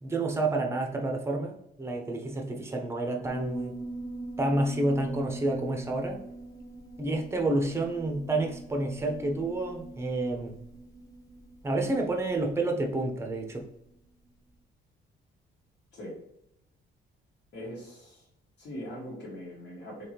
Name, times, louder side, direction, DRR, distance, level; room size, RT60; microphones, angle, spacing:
voice 1, 0.0-3.7 4.4-6.2 7.0-10.5 11.6-13.7, right 2 dB, 15° right, 2 dB, 0.7 m, -29 dB
Piano, 3.2-13.9, right 2 dB, 20° left, 1.0 m, -43 dB
voice 2, 17.5-18.3 18.6-20.1, equal, 65° left, -8 dB, 1.3 m, -41 dB
3.5 x 3.0 x 2.8 m, 0.81 s
cardioid pair, 90°, 20 cm